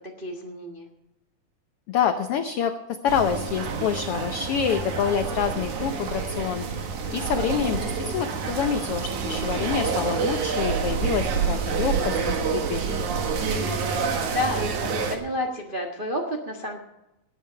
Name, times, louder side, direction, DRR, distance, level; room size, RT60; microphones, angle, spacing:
voice 1, 0.2-0.9 14.2-16.8, left 1 dB, 40° right, 0 dB, 0.7 m, -30 dB
voice 2, 1.9-6.6 7.1-12.8, left 7 dB, 70° left, 7 dB, 1.4 m, -27 dB
sound 1, 3.1-15.2, right 5 dB, 75° right, 3.0 m, -28 dB
19.0 x 9.3 x 5.7 m, 0.91 s
omnidirectional pair, 3.5 m